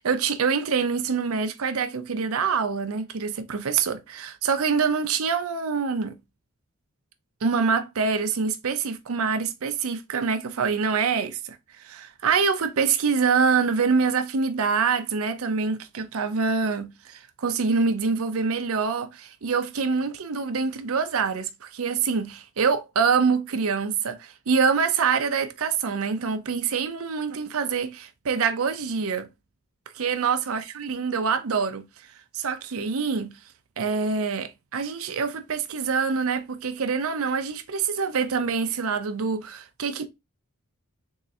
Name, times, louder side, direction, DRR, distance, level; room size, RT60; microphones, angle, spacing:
voice 1, 0.0-6.1 7.4-29.3 29.9-32.1 32.3-33.3 33.8-40.1, right 5 dB, 65° right, 0.6 m, -25 dB
3.7 x 3.1 x 2.7 m
head